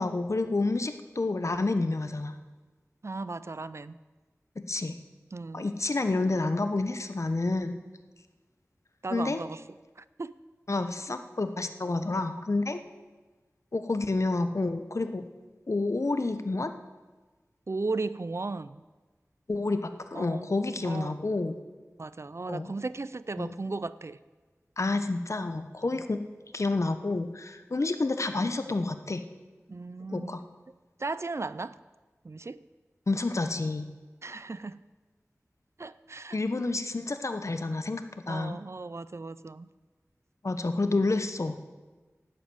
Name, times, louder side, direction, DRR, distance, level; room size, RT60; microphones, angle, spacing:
voice 1, 0.0-2.3 4.6-5.0 5.5-7.8 9.1-9.4 10.7-12.8 13.7-15.2 15.7-16.7 19.5-21.6 22.5-22.7 23.4-23.5 24.8-26.2 26.5-29.2 30.1-30.4 33.1-33.9 36.3-38.6 40.4-41.7, left 2 dB, 65° left, 9 dB, 1.0 m, -29 dB
voice 2, 3.0-4.0 5.3-5.6 9.0-9.6 10.0-10.3 12.1-12.2 17.7-18.8 20.1-21.2 22.0-24.2 25.9-26.0 29.7-30.4 31.0-31.8 32.2-32.6 34.2-34.8 35.8-36.4 38.3-39.7, right 3 dB, 55° right, 16 dB, 0.5 m, -36 dB
11.5 x 8.4 x 9.0 m, 1.3 s
wide cardioid pair, 55°, 6 cm